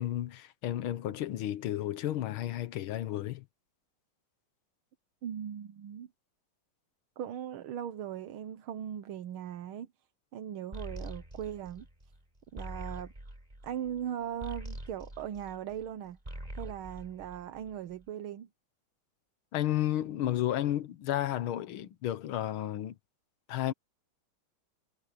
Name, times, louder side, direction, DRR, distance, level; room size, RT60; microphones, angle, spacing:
voice 1, 0.0-3.5 19.5-23.0 23.5-23.7, left 13 dB, 90° left, 1.8 m, -32 dB
voice 2, 5.2-6.1 7.2-9.9 10.3-11.9 12.5-13.1 13.6-16.2 16.5-18.5, right 9 dB, 85° right, 1.8 m, -39 dB
sound 1, 10.7-15.9 16.2-17.9, right 1 dB, 20° right, 5.3 m, -44 dB
omnidirectional pair, 2.2 m